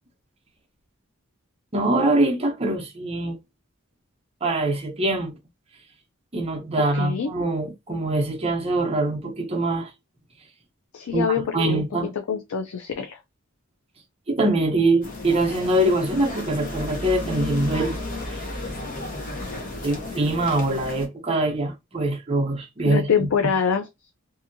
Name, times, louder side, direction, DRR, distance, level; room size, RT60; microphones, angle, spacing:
voice 1, 1.7-3.4 4.4-5.3 6.3-9.9 11.1-11.3 11.5-12.1 14.3-18.0 18.3-18.4 19.8-23.3, right 2 dB, 30° right, 0.7 m, -23 dB
voice 2, 6.9-7.3 10.9-11.8 12.3-13.2 22.9-23.9, left 7 dB, 85° left, 0.4 m, -25 dB
sound 1, 15.0-21.1, left 2 dB, 40° left, 0.8 m, -33 dB
2.7 x 2.6 x 2.6 m
head